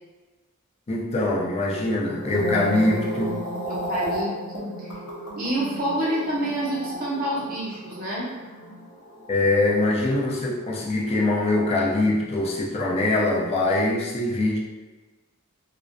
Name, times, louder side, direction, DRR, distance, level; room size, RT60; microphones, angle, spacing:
voice 1, 0.9-3.4 9.3-14.6, left 2 dB, 30° left, -3 dB, 0.4 m, -23 dB
sound 1, 2.1-10.5 10.7-11.1, equal, 80° left, 0.7 m, -34 dB
voice 2, 3.7-4.9 5.4-8.3, right 1 dB, 40° right, -6 dB, 0.7 m, -28 dB
2.4 x 2.0 x 2.5 m, 1.2 s
head